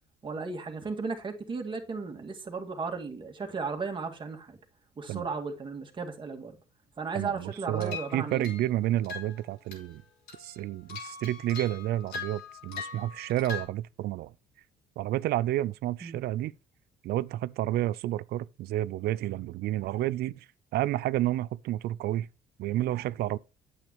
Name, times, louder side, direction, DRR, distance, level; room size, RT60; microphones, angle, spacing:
voice 1, 0.2-4.6 5.0-6.6 7.0-8.5 16.0-16.2, right 4 dB, 30° right, 2.0 m, -35 dB
voice 2, 7.1-10.0 10.4-14.3 15.0-16.5 17.0-20.5 20.7-22.3 22.6-23.4, right 14 dB, 70° right, 0.5 m, -30 dB
sound 1, 7.7-8.7 9.0-9.4 9.7-9.9 10.3-13.7, left 5 dB, 75° left, 5.7 m, -41 dB
9.0 x 8.1 x 3.0 m
cardioid pair, 110°, 17 cm